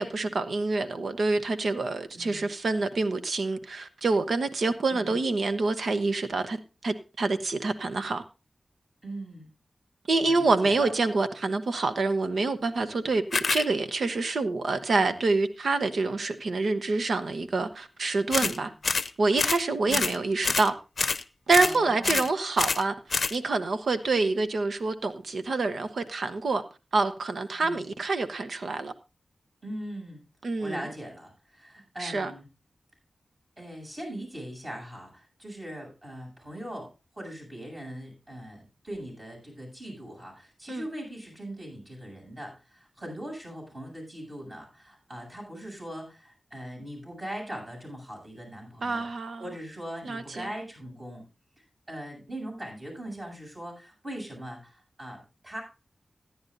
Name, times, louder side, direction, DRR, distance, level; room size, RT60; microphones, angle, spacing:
voice 1, 0.0-6.6 6.8-8.2 10.1-13.2 13.5-18.7 19.2-20.7 21.5-26.6 26.9-28.9 30.4-30.8 32.0-32.3 40.7-40.8 48.8-49.4 50.0-50.5, right 3 dB, 80° right, 0.9 m, -27 dB
voice 2, 2.1-2.5 4.9-5.2 9.0-9.5 10.2-10.9 18.4-18.7 19.9-20.1 21.6-22.2 27.6-27.8 29.6-30.2 30.6-32.5 33.6-36.9 37.1-49.1 49.4-51.2 51.6-55.6, right 1 dB, 40° right, 7.7 m, -40 dB
sound 1, 13.3-13.6 18.3-18.6 18.8-19.1 19.4-19.6 19.9-20.2 20.4-20.7 21.0-21.2 21.5-21.8 22.0-22.3 22.6-22.8 23.1-23.4, left 4 dB, 70° left, 0.6 m, -27 dB
15.5 x 10.5 x 2.6 m
cardioid pair, 55°, 0 cm